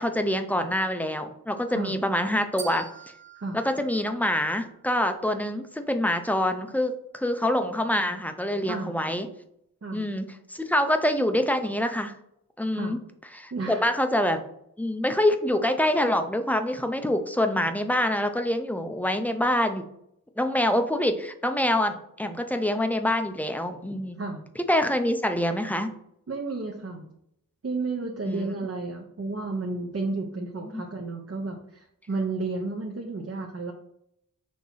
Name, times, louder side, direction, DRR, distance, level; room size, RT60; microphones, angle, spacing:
voice 1, 0.0-2.9 3.5-9.3 9.9-12.1 12.6-13.0 13.3-14.4 14.8-19.8 20.4-24.2 24.7-25.9 28.3-28.5 30.7-30.8, left 1 dB, 5° left, 7 dB, 0.7 m, -26 dB
sound 1, 2.6-4.8, right 6 dB, 75° right, 1.4 m, -44 dB
voice 2, 13.5-13.8 24.2-24.4 26.3-27.1 27.6-33.7, right 3 dB, 40° right, 1 dB, 0.9 m, -32 dB
6.3 x 3.0 x 5.6 m, 0.74 s
wide cardioid pair, 85°, 34 cm